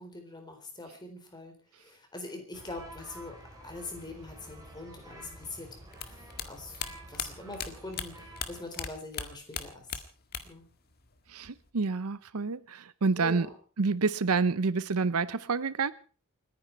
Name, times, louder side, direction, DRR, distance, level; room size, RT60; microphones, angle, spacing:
voice 1, 0.0-3.4 3.6-5.8 6.1-6.8 7.1-9.9 10.4-10.7 13.1-13.6, left 2 dB, 20° left, 4.1 m, -43 dB
sound 1, 2.5-8.6, right 1 dB, 15° right, 4.6 m, -49 dB
sound 2, 5.9-8.9 9.1-10.7 10.9-11.7, left 7 dB, 45° left, 1.8 m, -37 dB
voice 2, 11.3-13.5 13.8-15.9, right 4 dB, 80° right, 0.7 m, -28 dB
29.5 x 10.0 x 4.6 m
head